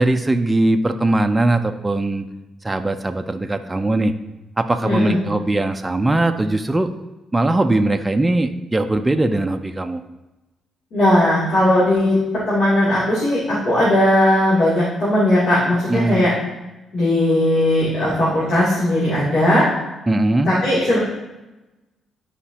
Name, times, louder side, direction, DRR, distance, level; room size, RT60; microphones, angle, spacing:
voice 1, 0.0-2.3 2.6-4.1 4.6-6.9 7.3-10.0 15.9-16.2 20.1-20.5, right 2 dB, 15° right, 6 dB, 0.4 m, -20 dB
voice 2, 4.8-5.2 10.9-12.2 12.5-16.3 16.9-19.7 20.4-21.0, left 1 dB, 65° left, -10 dB, 2.7 m, -17 dB
11.5 x 4.9 x 2.9 m, 1.1 s
cardioid pair, 90°, 0 cm